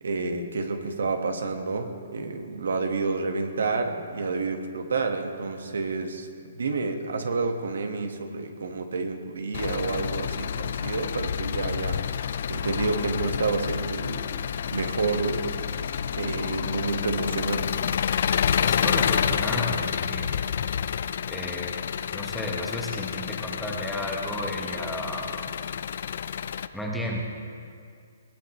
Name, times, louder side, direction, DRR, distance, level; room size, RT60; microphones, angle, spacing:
voice 1, 0.0-12.0 12.5-14.3 14.7-15.6 16.1-17.7, right 4 dB, 85° right, 5 dB, 1.6 m, -29 dB
Engine, 9.5-26.7, left 8 dB, 50° left, 0.4 m, -29 dB
voice 2, 18.6-20.3 21.3-21.8 22.1-25.5 26.7-27.2, left 1 dB, ahead, -2 dB, 1.1 m, -33 dB
21.0 x 17.0 x 3.2 m, 2.3 s
hypercardioid pair, 170°, 0 cm